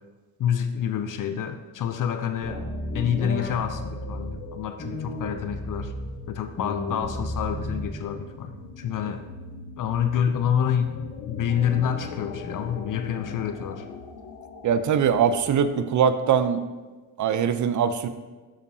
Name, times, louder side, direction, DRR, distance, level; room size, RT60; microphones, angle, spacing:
voice 1, 0.4-2.6 2.9-5.9 6.3-9.2 9.8-11.0 11.3-13.9, left 8 dB, 50° left, 8 dB, 0.5 m, -27 dB
sound 1, 1.8-15.9, left 5 dB, 75° left, 0.8 m, -41 dB
sound 2, 2.4-4.4 4.8-6.2 6.6-8.2, left 1 dB, 30° left, 1.2 m, -33 dB
voice 2, 14.6-16.6 17.2-18.1, right 7 dB, 45° right, 11 dB, 0.5 m, -22 dB
6.7 x 5.6 x 2.7 m, 1.3 s
cardioid pair, 70°, 41 cm